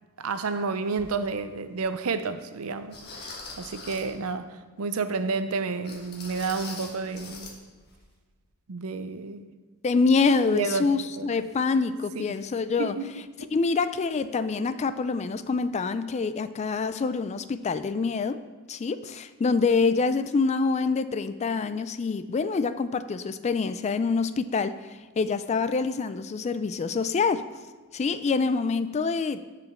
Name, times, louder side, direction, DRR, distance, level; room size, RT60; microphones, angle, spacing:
voice 1, 0.2-7.5 8.7-9.5 10.5-11.3 12.1-12.4 12.8-13.5, right 4 dB, 70° right, 0.6 m, -31 dB
sound 1, 1.0-1.1 1.8-1.9 2.9-4.2 5.8-7.6 7.8-8.0 8.4-8.5, left 3 dB, 45° left, 1.4 m, -42 dB
voice 2, 9.8-13.0 13.5-18.4 18.7-24.7 25.2-27.4 27.9-29.4, left 4 dB, 30° left, 0.3 m, -26 dB
7.6 x 5.1 x 7.0 m
head